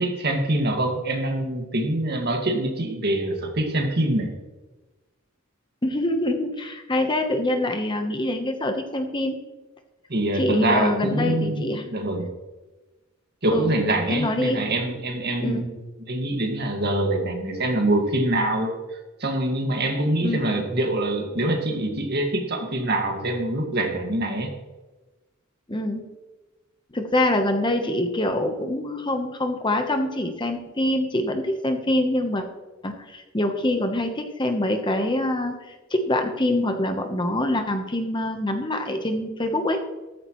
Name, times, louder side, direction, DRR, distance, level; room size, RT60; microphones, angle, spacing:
voice 1, 0.0-4.3 10.1-12.3 13.4-15.8 16.1-18.7 19.2-24.5, right 1 dB, 50° right, 3 dB, 1.9 m, -24 dB
voice 2, 5.8-9.4 10.3-11.8 13.5-13.7 14.1-14.6 15.4-15.7 20.2-20.4 25.7-26.0 26.9-32.4 32.8-39.8, left 1 dB, 20° left, 5 dB, 1.0 m, -25 dB
14.0 x 13.5 x 3.1 m, 1.2 s
head